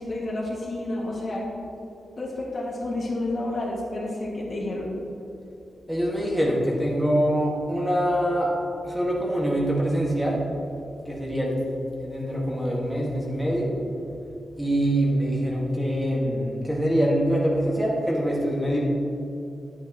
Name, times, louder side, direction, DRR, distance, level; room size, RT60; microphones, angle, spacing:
voice 1, 0.0-1.5 2.2-4.9, left 2 dB, 50° left, -4 dB, 2.1 m, -30 dB
voice 2, 5.9-8.6 8.8-10.4 11.1-11.5 12.0-13.7 14.6-18.8, equal, 5° right, -4 dB, 1.9 m, -24 dB
10.5 x 9.1 x 3.1 m, 2.7 s
cardioid pair, 90°, 0 cm